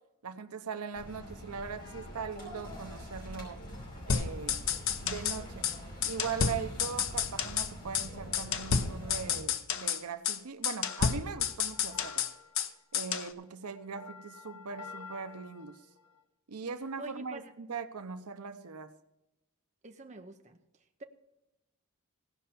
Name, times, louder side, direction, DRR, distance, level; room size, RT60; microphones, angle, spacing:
voice 1, 0.2-3.6 4.1-4.6 5.0-5.7 6.0-12.3 12.9-15.8 16.5-18.9, right 5 dB, 85° right, 11 dB, 0.8 m, -40 dB
sound 1, 0.9-9.4, equal, 45° left, 5.0 m, -45 dB
sound 2, 4.1-5.4 5.6-5.8 6.0-7.7 7.9-8.1 8.3-10.0 10.2-10.4 10.6-12.7 12.9-13.3, left 7 dB, 60° left, 0.7 m, -31 dB
sound 3, 10.8-16.2, left 5 dB, 85° left, 1.6 m, -50 dB
voice 2, 17.0-17.6 19.8-20.6, right 2 dB, 30° right, 6 dB, 0.7 m, -46 dB
16.5 x 5.6 x 6.9 m, 0.93 s
head